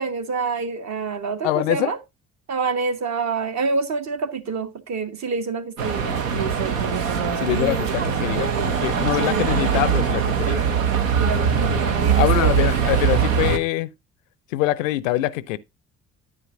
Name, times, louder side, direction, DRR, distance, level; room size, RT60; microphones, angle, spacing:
voice 1, 0.0-2.0 2.5-6.6 9.1-9.5 11.2-12.7, right 4 dB, 45° right, 1.1 m, -27 dB
voice 2, 1.4-1.9 7.4-8.5 8.8-10.6 12.2-13.9 14.5-15.6, left 15 dB, 75° left, 0.5 m, -24 dB
sound 1, 5.8-13.6, right 7 dB, 80° right, 0.8 m, -22 dB
9.5 x 9.1 x 2.5 m
figure-of-eight pair, 45°, 39 cm